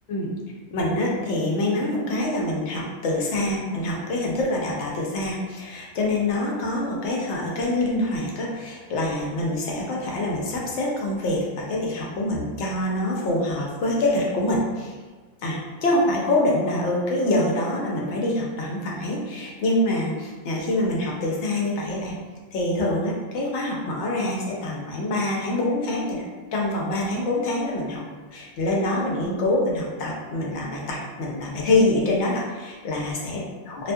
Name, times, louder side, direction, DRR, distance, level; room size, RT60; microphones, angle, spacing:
voice 1, 0.7-14.9 15.4-22.2 22.5-26.2 26.5-28.0 28.3-33.4, left 1 dB, 65° left, -2 dB, 0.8 m, -25 dB
2.4 x 2.3 x 2.6 m, 1.4 s
omnidirectional pair, 1.4 m